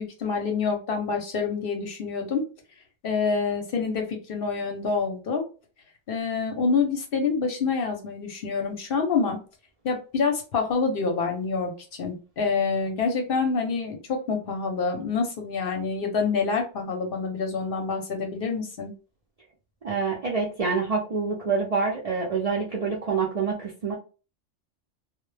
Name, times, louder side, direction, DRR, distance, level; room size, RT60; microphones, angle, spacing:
voice 1, 0.0-2.5 3.0-5.4 6.1-9.4 9.8-18.9, left 5 dB, 55° left, 3 dB, 0.7 m, -27 dB
voice 2, 19.8-24.0, right 5 dB, 60° right, -3 dB, 0.4 m, -26 dB
2.1 x 2.1 x 3.1 m, 0.34 s
omnidirectional pair, 1.3 m